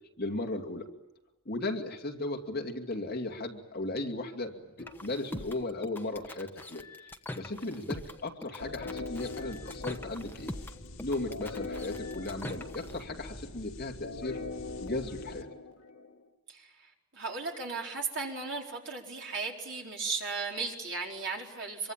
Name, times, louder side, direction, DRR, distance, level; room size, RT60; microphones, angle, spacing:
voice 1, 0.2-0.9 1.5-6.8 7.3-10.5 11.0-14.4 14.8-15.5, left 2 dB, 45° left, 3 dB, 2.5 m, -36 dB
sound 1, 4.8-13.0, left 1 dB, 10° left, 1.0 m, -43 dB
sound 2, 8.6-16.3, left 3 dB, 65° left, 1.9 m, -42 dB
voice 2, 17.1-21.9, right 4 dB, 50° right, 0 dB, 4.6 m, -36 dB
25.5 x 24.0 x 8.9 m, 1.0 s
head